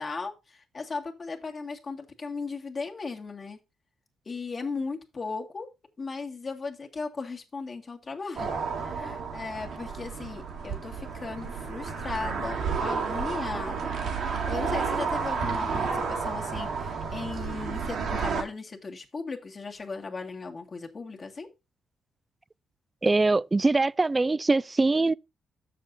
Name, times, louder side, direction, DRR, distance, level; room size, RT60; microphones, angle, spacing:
voice 1, 0.0-3.6 4.3-5.7 6.0-8.5 8.8-21.5, left 4 dB, 45° left, 1.7 m, -37 dB
sound 1, 8.4-18.4, right 5 dB, 75° right, 1.7 m, -31 dB
voice 2, 23.0-25.1, right 3 dB, 25° right, 0.3 m, -23 dB
6.8 x 6.7 x 3.9 m
supercardioid pair, 55°, 0 cm